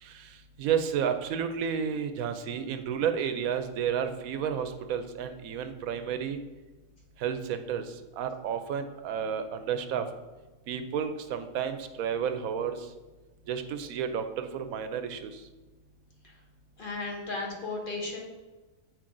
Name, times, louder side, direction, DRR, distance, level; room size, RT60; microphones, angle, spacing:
voice 1, 0.0-6.4 7.2-10.1 10.7-12.9 13.5-15.4, right 7 dB, 85° right, 8 dB, 1.1 m, -31 dB
voice 2, 16.8-18.2, left 3 dB, 40° left, -1 dB, 1.4 m, -35 dB
7.6 x 4.9 x 3.8 m, 1.2 s
omnidirectional pair, 1.4 m